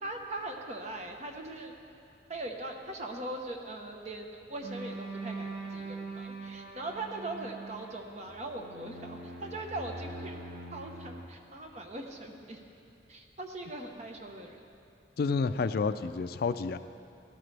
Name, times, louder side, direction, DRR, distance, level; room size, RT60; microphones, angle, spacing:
voice 1, 0.0-1.8 2.3-10.4 10.7-12.6 13.1-14.6, right 2 dB, 40° right, 2 dB, 1.1 m, -40 dB
sound 1, 4.6-11.2, right 2 dB, 80° right, 1.8 m, -42 dB
voice 2, 15.2-16.8, left 4 dB, 55° left, 12 dB, 0.4 m, -29 dB
17.5 x 12.5 x 3.4 m, 2.6 s
head